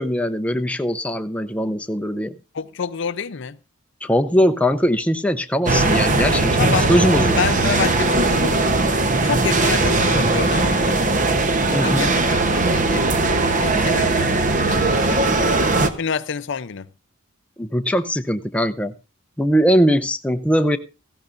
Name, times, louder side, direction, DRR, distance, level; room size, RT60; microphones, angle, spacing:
voice 1, 0.0-2.4 4.0-7.4 11.7-12.1 17.6-18.9 19.4-20.8, equal, 5° left, 0.6 m, -20 dB
voice 2, 2.5-3.6 6.6-6.9 7.4-8.7 9.2-11.0 11.7-13.1 13.6-15.6 16.0-16.9, left 6 dB, 60° left, 0.6 m, -28 dB
sound 1, 5.7-15.9, right 2 dB, 40° right, 0.9 m, -19 dB
17.5 x 15.0 x 2.6 m
head